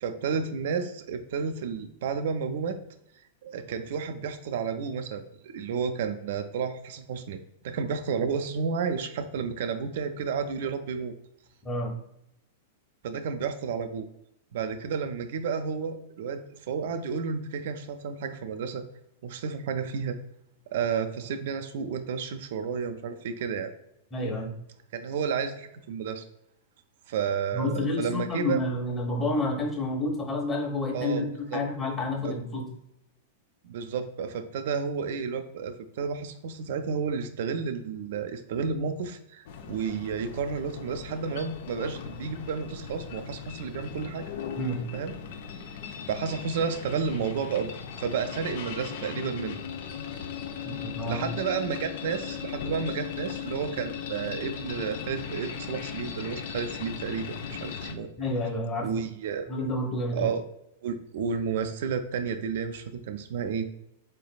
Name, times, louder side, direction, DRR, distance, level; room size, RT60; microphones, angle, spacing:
voice 1, 0.0-2.8 3.4-7.4 7.6-11.1 13.0-14.1 14.5-18.8 19.2-20.2 20.7-23.7 24.9-26.2 27.1-28.6 30.9-31.2 31.5-31.6 32.2-32.3 33.6-44.3 44.9-45.2 46.1-47.7 48.0-49.6 51.1-58.1 58.8-59.5 60.1-60.4 60.8-63.7, right 6 dB, 60° right, 8 dB, 0.3 m, -31 dB
voice 2, 24.1-24.5 27.5-32.6 44.6-44.8 50.6-51.3 58.2-58.9 59.5-60.3, left 2 dB, 20° left, -1 dB, 1.2 m, -29 dB
sound 1, 39.4-57.9, left 7 dB, 60° left, 0.4 m, -38 dB
4.0 x 3.2 x 2.3 m, 0.79 s
figure-of-eight pair, 100°, 0 cm